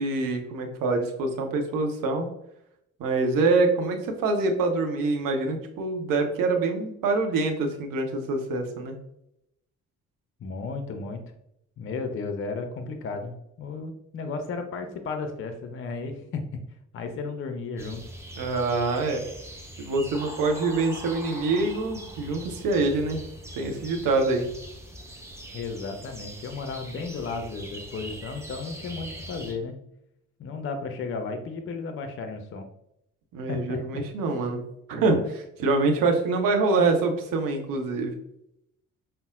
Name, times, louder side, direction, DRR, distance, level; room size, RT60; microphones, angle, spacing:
voice 1, 0.0-2.3 3.0-9.0 18.4-19.2 19.8-23.2 23.5-24.5 33.3-34.6 34.9-38.1, right 3 dB, 55° right, 4 dB, 0.8 m, -25 dB
voice 2, 10.4-11.2 11.8-16.4 16.9-18.0 25.5-29.8 30.4-32.7 33.5-34.0, left 4 dB, 30° left, 6 dB, 0.5 m, -34 dB
sound 1, 17.8-29.5, right 1 dB, 5° right, 0.8 m, -42 dB
5.4 x 2.1 x 2.4 m, 0.79 s
figure-of-eight pair, 40°, 40 cm